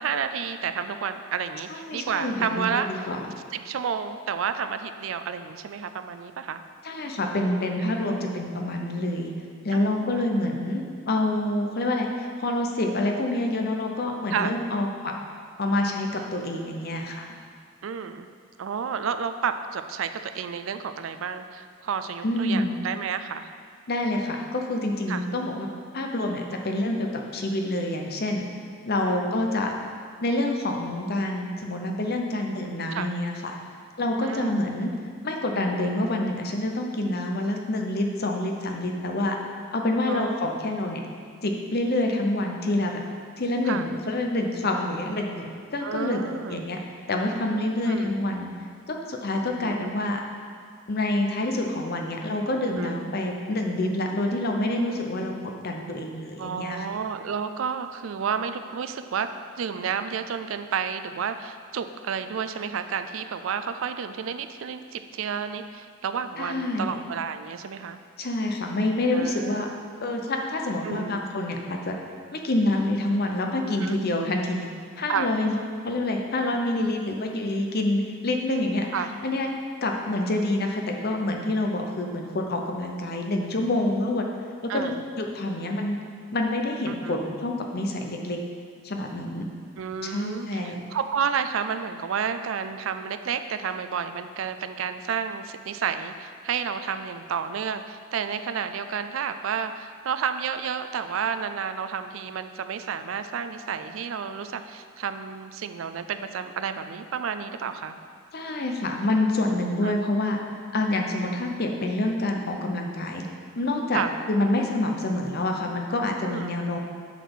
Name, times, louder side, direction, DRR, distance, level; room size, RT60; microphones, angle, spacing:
voice 1, 0.0-2.9 3.5-6.6 8.1-8.4 9.7-10.2 14.3-14.6 17.8-18.3 18.6-23.5 25.1-25.2 29.0-29.3 32.9-33.1 34.2-34.7 40.1-40.4 40.8-40.9 43.7-43.9 45.8-46.6 47.8-48.1 49.5-50.2 52.7-52.9 56.4-59.3 59.6-68.0 69.1-69.8 70.8-71.2 73.8-74.0 75.1-75.3 78.9-79.1 84.7-85.0 86.9-87.2 89.8-108.0 109.8-109.9 113.9-114.2 116.2-116.6, right 7 dB, 70° right, 10 dB, 0.4 m, -31 dB
voice 2, 1.7-3.2 6.8-9.3 9.6-15.1 15.6-17.3 22.2-22.8 23.9-25.7 25.9-28.5 28.8-29.7 30.2-33.5 34.0-34.9 35.2-39.4 39.7-41.0 41.4-43.0 43.4-46.2 46.5-46.8 47.1-48.5 48.9-50.2 50.9-56.8 66.4-67.0 68.2-69.7 70.0-71.9 72.3-74.7 75.0-75.6 75.8-79.5 79.8-84.3 84.6-86.0 86.3-88.4 88.8-89.5 90.0-90.8 108.3-110.4 110.7-113.2 113.5-114.0 114.3-116.8, left 1 dB, 50° left, 2 dB, 0.8 m, -27 dB
8.1 x 4.2 x 6.2 m, 2.1 s
head